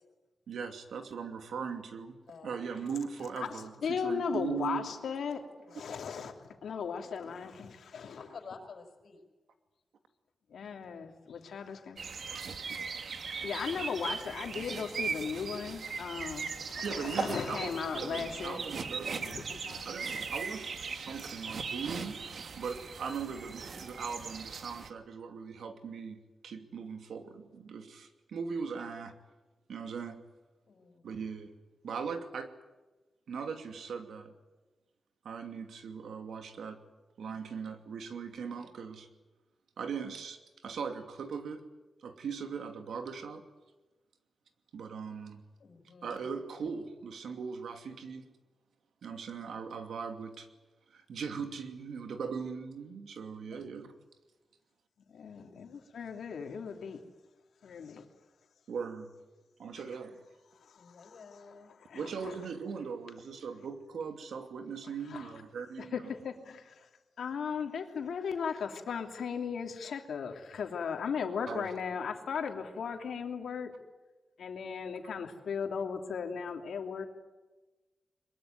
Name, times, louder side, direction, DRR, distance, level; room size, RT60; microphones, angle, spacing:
voice 1, 0.5-2.1 2.4-4.9 12.3-12.4 16.8-19.5 19.8-22.2 22.6-29.1 29.7-30.2 31.0-31.5 31.8-32.5 33.3-34.3 35.2-36.8 37.2-39.1 39.8-41.6 42.0-43.4 44.7-45.4 46.0-48.3 49.0-50.5 50.9-54.0 58.7-59.1 59.6-60.2 61.9-66.1 71.5-71.7, right 6 dB, 90° right, 7 dB, 2.6 m, -39 dB
voice 2, 2.3-2.7 8.2-9.2 30.7-31.1 45.6-46.2 53.5-53.6 55.4-55.6 60.8-61.7, left 5 dB, 65° left, 6 dB, 5.3 m, -51 dB
voice 3, 3.4-5.4 5.7-8.2 10.5-12.0 13.4-18.6 19.2-19.9 55.1-57.0 57.6-58.0 60.7-61.2 61.9-62.3 65.1-65.3 65.8-66.8 67.2-73.7 74.4-77.0, left 6 dB, 85° left, 4 dB, 2.9 m, -37 dB
sound 1, 12.0-24.9, right 5 dB, 60° right, 1.7 m, -39 dB
22.5 x 22.0 x 9.5 m, 1.2 s
wide cardioid pair, 120°, 0 cm